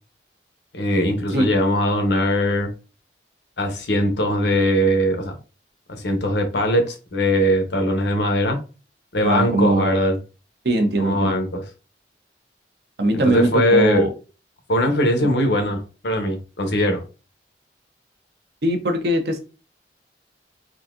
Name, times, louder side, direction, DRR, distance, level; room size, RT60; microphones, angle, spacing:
voice 1, 0.7-2.7 3.6-5.4 5.9-8.6 9.1-10.2 11.0-11.6 13.1-14.1 14.7-17.0, equal, 80° left, 5 dB, 0.8 m, -20 dB
voice 2, 9.2-9.9 10.6-11.4 13.0-14.1 18.6-19.4, right 1 dB, 70° right, 5 dB, 0.7 m, -21 dB
3.9 x 2.6 x 2.4 m, 0.34 s
head